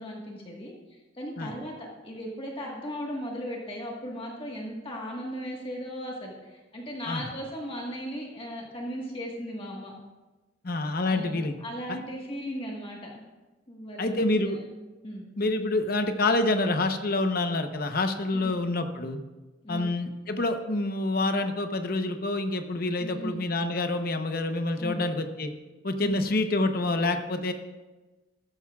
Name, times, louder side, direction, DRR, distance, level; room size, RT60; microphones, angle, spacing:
voice 1, 0.0-9.9 11.1-13.1 13.7-14.6 15.0-15.3 18.3-18.5 19.6-19.9 23.0-23.4 24.8-25.0 26.0-26.3, equal, 30° left, -1 dB, 1.4 m, -37 dB
voice 2, 10.6-11.6 11.9-12.0 14.0-14.6 15.4-19.2 19.7-25.5 25.8-27.5, left 2 dB, 50° left, 7 dB, 0.8 m, -27 dB
13.5 x 13.0 x 2.4 m, 1.2 s
head